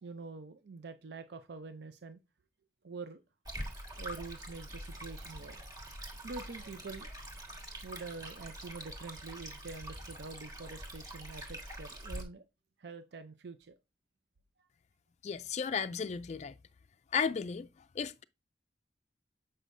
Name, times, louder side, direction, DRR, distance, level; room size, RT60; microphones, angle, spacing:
voice 1, 0.0-2.2 2.8-3.2 4.0-5.6 6.2-7.1 7.8-12.5 12.8-13.8, right 4 dB, 75° right, 0.5 m, -46 dB
Stream, 3.4-12.2, right 1 dB, 20° right, 1.6 m, -45 dB
voice 2, 15.2-16.5 17.1-17.7 18.0-18.2, left 6 dB, 40° left, 0.3 m, -34 dB
8.1 x 5.4 x 2.6 m
head